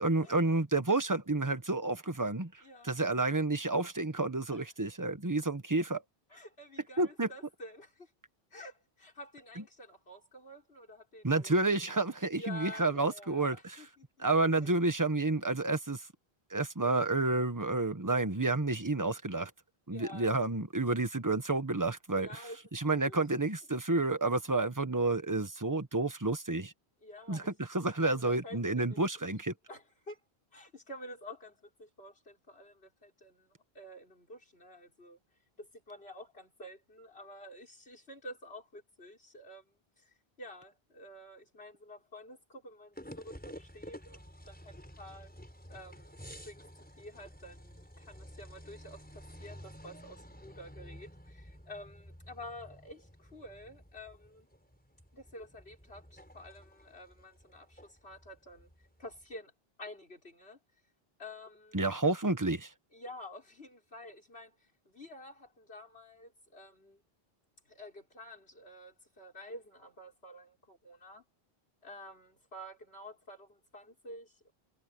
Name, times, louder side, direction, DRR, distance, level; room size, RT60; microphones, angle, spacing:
voice 1, 0.0-6.0 7.0-7.3 9.6-9.7 11.2-13.8 14.2-16.1 16.5-19.5 19.9-22.4 22.7-26.7 27.3-29.5 61.7-62.7, right 2 dB, 20° right, 1.4 m, -30 dB
voice 2, 2.6-2.9 4.5-4.7 6.3-8.1 8.5-11.6 12.3-14.0 14.6-14.7 19.9-20.4 22.1-22.6 23.1-23.2 27.0-27.5 28.0-28.9 29.7-30.2 30.5-35.2 35.6-45.3 45.7-46.7 47.0-54.5 55.1-58.7 59.0-59.5 59.8-60.6 61.2-61.8 62.9-67.0 67.7-71.2 71.8-74.5, left 1 dB, 85° left, 5.9 m, -50 dB
sound 1, 43.0-59.3, equal, 10° left, 5.1 m, -52 dB
omnidirectional pair, 1.0 m